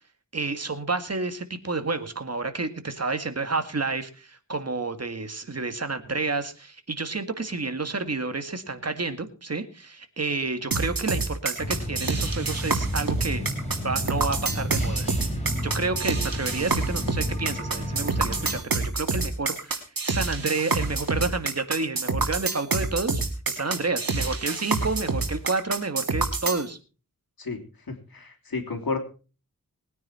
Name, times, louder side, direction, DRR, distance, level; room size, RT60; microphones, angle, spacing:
voice 1, 0.3-13.4 13.8-15.1 15.6-23.2 23.5-26.8, right 3 dB, 45° right, 8 dB, 1.9 m, -30 dB
sound 1, 10.7-26.6, right 3 dB, 75° right, 3.0 m, -27 dB
sound 2, 11.6-18.6, equal, 20° left, 5.0 m, -32 dB
voice 2, 27.4-29.0, left 4 dB, 80° left, 4 dB, 3.1 m, -32 dB
20.5 x 9.4 x 4.4 m, 0.36 s
wide cardioid pair, 90°, 35 cm